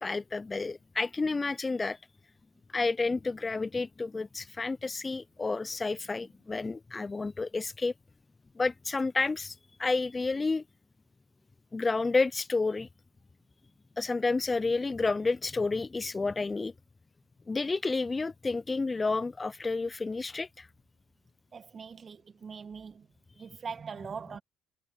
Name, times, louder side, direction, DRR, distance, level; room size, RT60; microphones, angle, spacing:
voice 1, 0.0-2.0 2.7-7.9 8.6-10.6 11.7-12.9 14.0-16.7 17.5-20.7, left 3 dB, 25° left, 0.4 m, -30 dB
voice 2, 21.5-23.1 23.4-24.4, right 6 dB, 40° right, 1.9 m, -42 dB
supercardioid pair, 70°, 0 cm